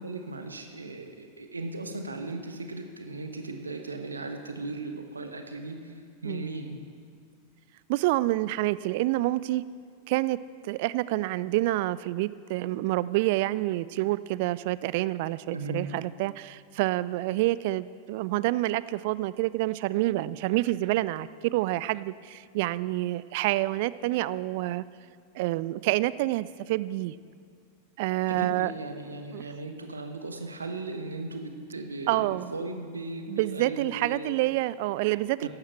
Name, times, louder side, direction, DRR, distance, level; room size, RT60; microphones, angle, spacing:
voice 1, 0.0-5.9 6.2-6.8 15.5-15.9 28.3-34.4 35.4-35.5, right 2 dB, 75° right, 6 dB, 1.1 m, -37 dB
voice 2, 7.9-9.6 10.1-10.4 10.6-24.8 25.4-27.1 28.0-28.7 29.3-29.4 32.1-32.5 33.3-35.5, right 17 dB, 50° right, 18 dB, 0.3 m, -28 dB
14.5 x 11.5 x 4.5 m, 2.2 s
figure-of-eight pair, 90°, 0 cm